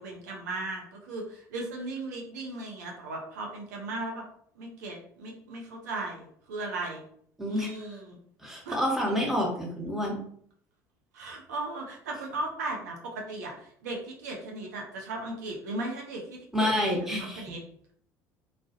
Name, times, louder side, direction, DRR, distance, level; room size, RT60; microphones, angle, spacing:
voice 1, 0.0-4.2 4.6-7.0 7.5-8.2 8.7-8.8 11.1-16.8 17.2-17.6, right 2 dB, 85° right, 0 dB, 0.6 m, -37 dB
voice 2, 7.4-7.7 8.4-10.2 16.5-17.5, left 1 dB, 5° right, -1 dB, 0.8 m, -28 dB
2.3 x 2.1 x 2.6 m, 0.63 s
hypercardioid pair, 70°, 9 cm